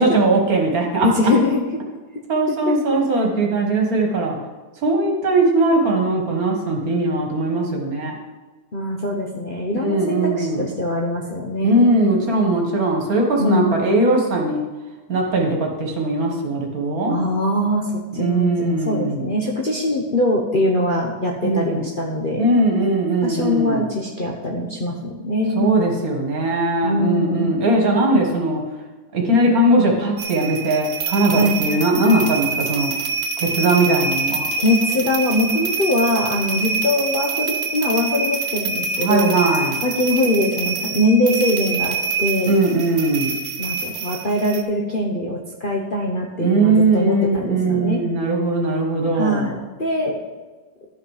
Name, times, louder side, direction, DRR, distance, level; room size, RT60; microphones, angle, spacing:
voice 1, 0.0-1.3 2.3-4.4 4.8-8.1 9.7-10.7 11.6-14.6 15.1-17.2 18.1-19.3 21.4-21.8 22.4-23.8 25.6-28.6 29.1-32.9 33.4-34.5 39.0-39.8 42.5-43.3 46.4-49.5, right 2 dB, 55° right, 1 dB, 1.9 m, -19 dB
voice 2, 1.0-1.6 2.7-2.8 8.7-12.2 13.4-13.9 17.0-22.5 23.2-25.7 26.8-27.6 31.3-31.6 34.6-39.4 39.8-42.5 43.6-48.0 49.1-50.2, left 1 dB, 40° left, -1 dB, 0.8 m, -22 dB
sound 1, 30.2-44.6, right 4 dB, 90° right, 1.6 m, -26 dB
12.0 x 5.8 x 4.9 m, 1.2 s
omnidirectional pair, 1.8 m